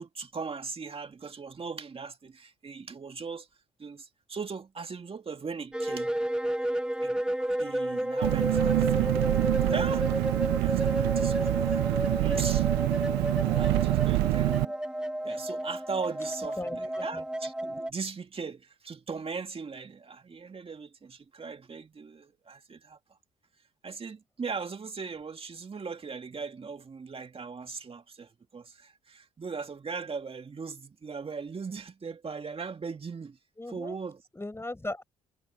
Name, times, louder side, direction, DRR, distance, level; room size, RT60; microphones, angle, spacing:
voice 1, 0.0-3.5 3.8-6.2 7.0-9.2 9.6-10.1 10.6-11.8 12.2-12.7 13.5-14.8 15.2-23.2 23.8-33.4 33.7-34.2, right 5 dB, 35° right, 2.1 m, -39 dB
sound 1, 5.7-17.9, right 1 dB, 5° right, 1.5 m, -31 dB
Engine, 8.2-14.7, right 22 dB, 75° right, 0.9 m, -26 dB
voice 2, 16.6-17.2 33.6-34.0 34.3-35.0, left 2 dB, 15° left, 5.3 m, -38 dB
hypercardioid pair, 50°, 17 cm